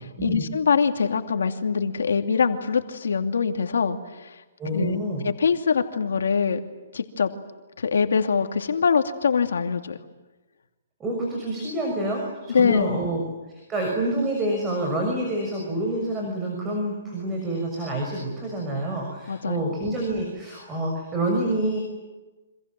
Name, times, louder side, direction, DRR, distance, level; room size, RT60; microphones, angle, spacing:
voice 1, 0.2-4.4 4.7-5.0 5.2-6.6 6.9-7.3 7.8-10.0 12.5-13.0 19.3-19.6, left 6 dB, 85° left, 6 dB, 2.6 m, -23 dB
voice 2, 4.6-5.3 11.0-13.2 13.7-21.8, right 1 dB, 15° right, 0 dB, 6.4 m, -27 dB
28.5 x 26.5 x 7.7 m, 1.1 s
hypercardioid pair, 160°, 0 cm